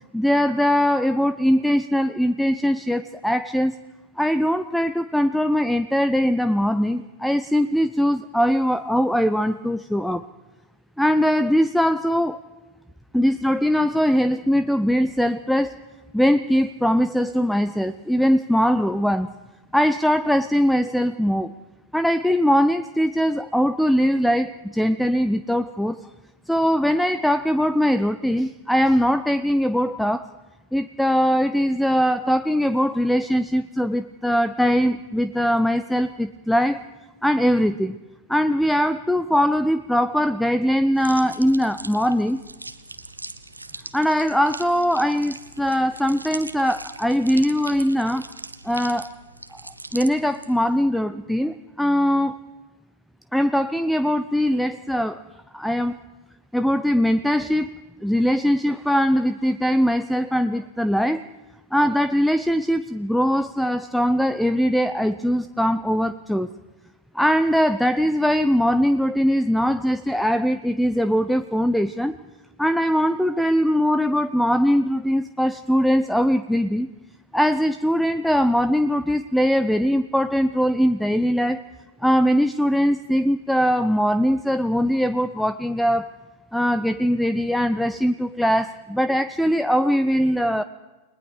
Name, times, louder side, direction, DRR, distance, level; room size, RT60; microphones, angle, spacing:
voice 1, 0.1-3.7 4.2-10.3 11.0-12.4 13.1-15.8 16.1-19.3 19.7-21.5 21.9-26.1 26.5-30.3 30.7-36.8 37.2-38.0 38.3-42.4 43.9-48.3 48.6-49.1 49.9-52.4 53.3-55.2 55.5-56.0 56.5-57.7 58.0-61.2 61.7-66.5 67.1-72.1 72.6-76.9 77.3-81.6 82.0-86.1 86.5-90.6, equal, ahead, 13 dB, 0.6 m, -21 dB
sound 1, 40.9-50.8, right 2 dB, 85° right, 1.2 m, -40 dB
30.0 x 20.5 x 4.9 m, 1.2 s
figure-of-eight pair, 95°, 0 cm